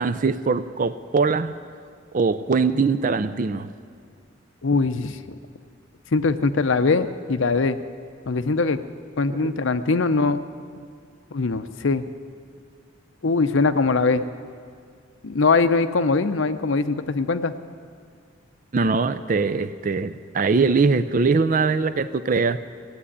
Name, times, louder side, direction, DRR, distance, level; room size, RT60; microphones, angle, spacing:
voice 1, 0.0-1.5 2.1-3.7 9.4-9.6 18.7-22.6, right 4 dB, 40° right, 13 dB, 0.4 m, -22 dB
voice 2, 4.6-5.2 6.1-7.8 8.3-8.8 9.2-10.4 11.3-12.0 13.2-14.2 15.2-17.5, left 4 dB, 70° left, 11 dB, 0.6 m, -21 dB
17.0 x 8.3 x 9.9 m, 2.1 s
head